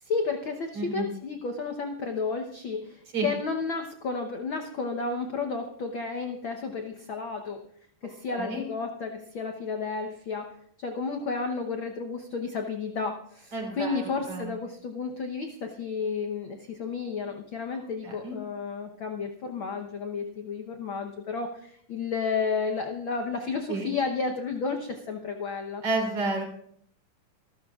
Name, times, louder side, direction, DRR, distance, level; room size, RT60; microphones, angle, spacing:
voice 1, 0.0-7.6 8.0-10.5 10.8-25.8, left 4 dB, 65° left, 3 dB, 1.2 m, -32 dB
voice 2, 0.7-1.1 3.1-3.3 8.3-8.6 13.5-14.5 18.0-18.3 23.7-23.9 25.8-26.4, right 3 dB, 45° right, 1 dB, 4.4 m, -30 dB
27.5 x 13.0 x 2.4 m, 0.66 s
omnidirectional pair, 3.6 m